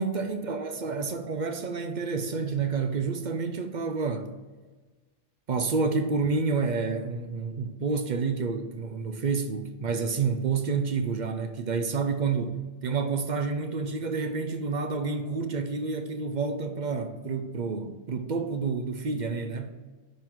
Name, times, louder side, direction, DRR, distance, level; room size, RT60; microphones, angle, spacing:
voice 1, 0.0-4.3 5.5-19.7, right 4 dB, 50° right, 0.6 m, -29 dB
10.5 x 3.8 x 4.6 m
omnidirectional pair, 1.3 m